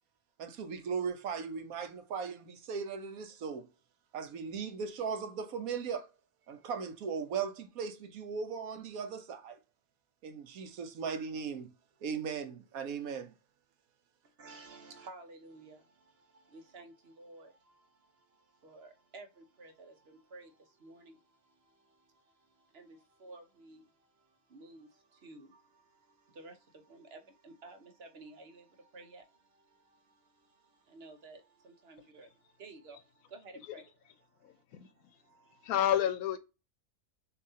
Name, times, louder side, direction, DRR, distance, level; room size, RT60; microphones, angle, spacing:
voice 1, 0.4-3.7 4.1-6.1 6.5-9.6 10.2-11.7 12.0-13.3, right 6 dB, 80° right, 1.2 m, -38 dB
voice 2, 14.2-33.9 34.2-35.7, right 3 dB, 50° right, 1.0 m, -54 dB
voice 3, 34.4-34.9 35.6-36.4, left 11 dB, 85° left, 1.1 m, -30 dB
6.7 x 2.9 x 2.7 m
omnidirectional pair, 1.5 m